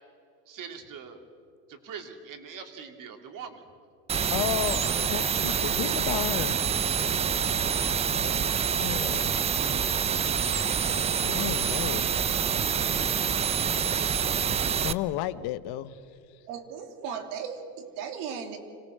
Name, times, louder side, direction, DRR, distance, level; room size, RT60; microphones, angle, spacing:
voice 1, 0.5-1.2 1.7-3.6, right 6 dB, 45° right, 6 dB, 2.8 m, -43 dB
sound 1, 4.1-14.9, right 7 dB, 15° right, 0.4 m, -26 dB
voice 2, 4.3-6.6 6.8-7.0 8.8-9.4 10.9-12.0 14.8-16.0, left 14 dB, 55° left, 14 dB, 0.9 m, -33 dB
voice 3, 16.5-18.6, right 7 dB, 70° right, 5 dB, 2.9 m, -36 dB
26.0 x 17.5 x 6.6 m, 2.5 s
supercardioid pair, 105°, 46 cm